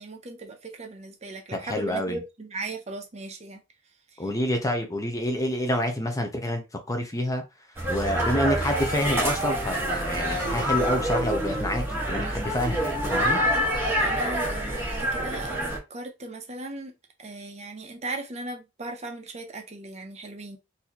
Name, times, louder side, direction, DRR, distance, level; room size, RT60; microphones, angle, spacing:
voice 1, 0.0-3.6 4.2-4.3 13.5-16.9 17.2-20.6, right 2 dB, 35° right, 0.6 m, -38 dB
voice 2, 1.6-2.2 4.2-6.6 6.9-7.4 7.9-13.4, left 1 dB, 15° left, 0.6 m, -28 dB
sound 1, 7.8-15.8, equal, 10° right, 1.2 m, -26 dB
4.0 x 2.7 x 2.9 m
head